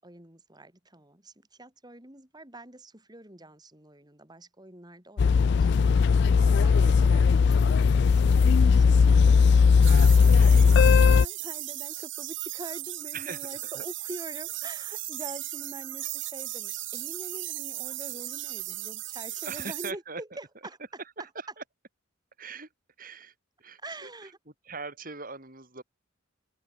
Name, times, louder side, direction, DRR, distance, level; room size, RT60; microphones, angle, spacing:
voice 1, 0.0-20.8 23.8-24.4, right 1 dB, 20° right, 5.3 m, -45 dB
sound 1, 5.2-11.3, left 5 dB, 60° left, 0.4 m, -18 dB
voice 2, 6.4-7.0 13.1-13.4 13.7-13.8 14.8-14.9 19.4-20.2 22.4-22.7 23.0-23.3 23.6-24.1 24.7-25.8, right 4 dB, 45° right, 7.6 m, -41 dB
sound 2, 9.8-19.9, right 16 dB, 65° right, 3.1 m, -36 dB
open air
head